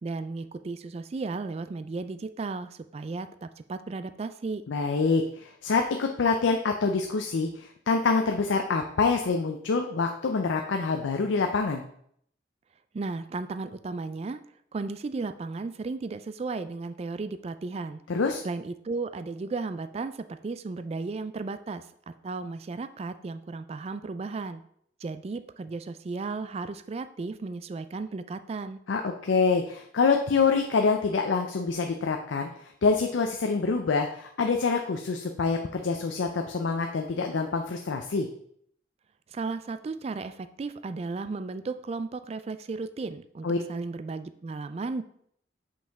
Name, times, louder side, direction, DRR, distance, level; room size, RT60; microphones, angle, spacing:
voice 1, 0.0-4.6 12.9-14.4 14.7-18.0 18.4-24.6 25.0-28.8 39.3-45.0, right 3 dB, 35° right, 12 dB, 0.3 m, -35 dB
voice 2, 4.7-11.8 18.1-18.4 28.9-32.5 32.8-38.3 43.4-43.6, left 4 dB, 85° left, 4 dB, 0.5 m, -26 dB
5.6 x 5.1 x 3.4 m, 0.67 s
head